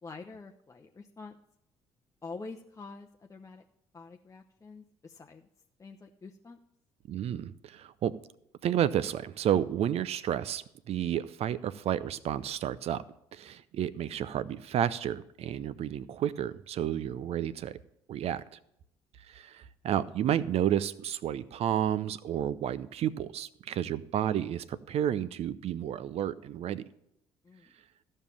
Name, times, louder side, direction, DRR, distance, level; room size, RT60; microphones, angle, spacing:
voice 1, 0.0-1.4 2.2-3.6 3.9-5.5 5.8-6.6 27.4-27.7, left 3 dB, 25° left, 2 dB, 0.8 m, -46 dB
voice 2, 7.1-8.2 8.6-13.0 13.3-17.8 18.1-18.4 19.3-26.8, right 10 dB, 50° right, 17 dB, 0.6 m, -31 dB
14.0 x 5.5 x 7.4 m, 0.78 s
figure-of-eight pair, 50°, 13 cm